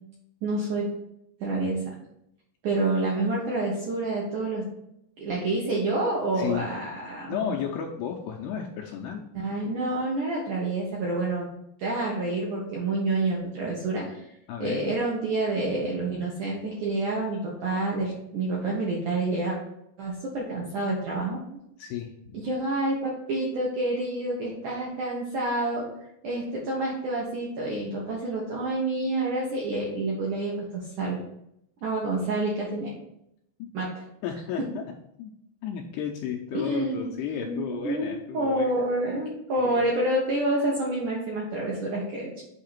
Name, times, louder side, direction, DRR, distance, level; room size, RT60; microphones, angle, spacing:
voice 1, 0.4-0.9 1.4-1.8 2.6-4.7 5.2-7.4 9.4-11.5 11.8-14.2 14.6-19.6 20.0-21.4 22.3-25.9 26.2-31.2 31.8-32.9 33.7-33.9 36.5-37.1 37.4-42.4, right 2 dB, 70° right, -4 dB, 2.0 m, -28 dB
voice 2, 6.4-6.7 7.3-9.3 14.5-14.9 21.8-22.3 33.6-33.7 34.2-34.8 35.2-35.3 35.6-38.7 39.6-39.9, left 8 dB, 80° left, 0 dB, 2.4 m, -33 dB
8.0 x 2.8 x 5.8 m, 0.78 s
omnidirectional pair, 5.2 m